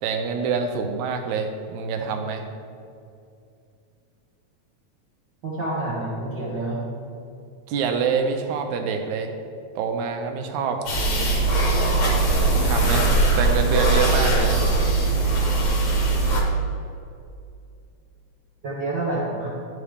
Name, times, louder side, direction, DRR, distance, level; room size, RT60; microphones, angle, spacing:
voice 1, 0.0-2.4 7.7-9.3 9.8-10.8 12.6-13.1 13.4-14.6, right 5 dB, 80° right, 5 dB, 2.0 m, -26 dB
voice 2, 5.4-6.8 18.6-19.5, right 2 dB, 65° right, -6 dB, 1.1 m, -28 dB
sound 1, 10.9-16.4, right 3 dB, 55° left, 1.3 m, -20 dB
11.5 x 4.8 x 3.4 m, 2.5 s
omnidirectional pair, 3.4 m